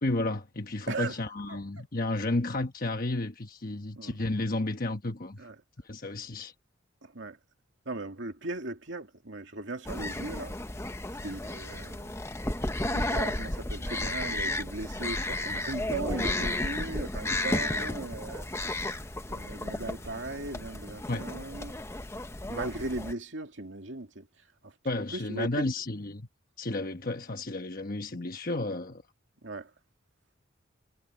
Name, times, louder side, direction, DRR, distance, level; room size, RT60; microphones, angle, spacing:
voice 1, 0.0-5.4 5.8-6.5 21.1-21.2 24.8-26.3 26.6-29.0, left 2 dB, 45° left, 1.2 m, -32 dB
voice 2, 0.9-1.2 1.5-1.6 4.0-4.1 5.4-5.5 7.0-7.4 7.9-10.5 11.1-12.2 12.7-21.7 22.5-24.3 24.6-24.7 25.1-25.7 29.4-29.7, right 2 dB, 65° right, 2.5 m, -38 dB
sound 1, 9.9-23.1, left 2 dB, 15° left, 0.9 m, -33 dB
head